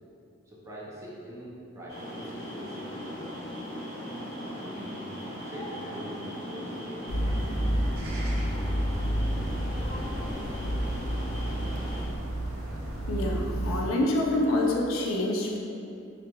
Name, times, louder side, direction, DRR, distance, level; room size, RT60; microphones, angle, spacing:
voice 1, 0.5-3.4 4.5-5.1 5.4-7.2, equal, 15° right, -6 dB, 0.4 m, -44 dB
sound 1, 1.9-12.1, equal, 50° left, 1.1 m, -38 dB
sound 2, 7.1-13.8, equal, 75° right, 0.4 m, -30 dB
voice 2, 13.1-15.6, left 1 dB, 75° left, 0 dB, 0.4 m, -26 dB
2.9 x 2.4 x 2.2 m, 2.6 s
head